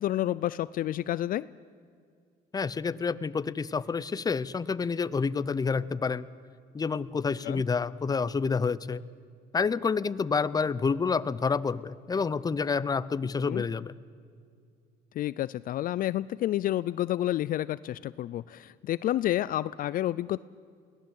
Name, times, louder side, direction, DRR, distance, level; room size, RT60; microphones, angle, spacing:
voice 1, 0.0-1.5 7.4-7.6 13.4-13.6 15.2-20.4, left 13 dB, 55° left, 18 dB, 0.4 m, -29 dB
voice 2, 2.5-6.3 6.7-9.0 9.5-13.9, left 5 dB, 20° left, 16 dB, 0.7 m, -28 dB
22.5 x 17.5 x 8.4 m, 2.3 s
cardioid pair, 110°, 17 cm